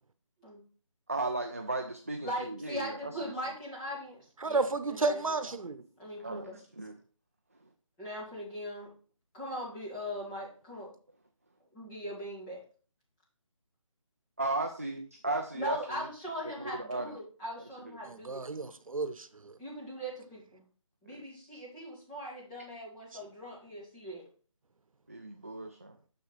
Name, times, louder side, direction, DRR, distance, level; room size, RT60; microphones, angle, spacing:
voice 1, 1.1-3.1 6.2-6.5 6.8-6.9 14.4-15.8 16.8-17.1 21.1-21.2 25.1-26.0, right 2 dB, 25° right, 0.3 m, -35 dB
voice 2, 2.2-5.5 6.0-6.6 8.0-8.9 9.3-10.9 11.7-12.6 15.5-18.4 19.6-20.6 21.0-24.2, equal, 10° left, 2.0 m, -40 dB
voice 3, 4.4-5.8 18.0-19.5, right 3 dB, 85° right, 0.8 m, -32 dB
6.5 x 6.5 x 3.2 m
figure-of-eight pair, 170°, 17 cm